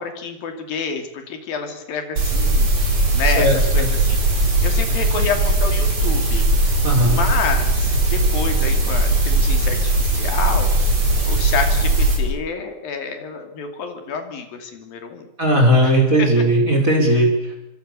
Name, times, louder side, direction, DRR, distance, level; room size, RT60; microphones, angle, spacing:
voice 1, 0.0-4.2 4.6-6.5 7.0-10.7 11.2-15.3 15.8-15.9 16.2-16.3 17.1-17.3, left 5 dB, 80° left, 6 dB, 4.6 m, -28 dB
sound 1, 2.2-12.2, right 2 dB, 55° right, 7.0 m, -18 dB
voice 2, 3.4-3.9 6.8-7.2 15.4-17.3, right 1 dB, 20° right, 2 dB, 5.3 m, -17 dB
26.0 x 24.5 x 7.0 m, 0.84 s
omnidirectional pair, 4.1 m